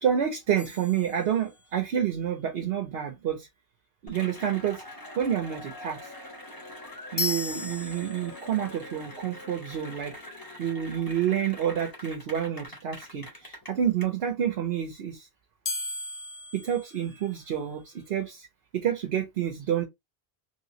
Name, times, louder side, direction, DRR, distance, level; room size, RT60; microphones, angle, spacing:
voice 1, 0.0-3.5 4.0-4.8 5.1-6.1 7.1-10.2 10.6-15.3 16.5-18.5 18.7-19.9, right 9 dB, 65° right, 0.9 m, -29 dB
sound 1, 0.6-1.9 7.2-8.7 15.6-17.8, left 3 dB, 40° left, 0.5 m, -36 dB
Cheering / Applause, 4.1-14.0, left 1 dB, 20° left, 1.2 m, -44 dB
3.1 x 2.9 x 2.8 m
omnidirectional pair, 1.1 m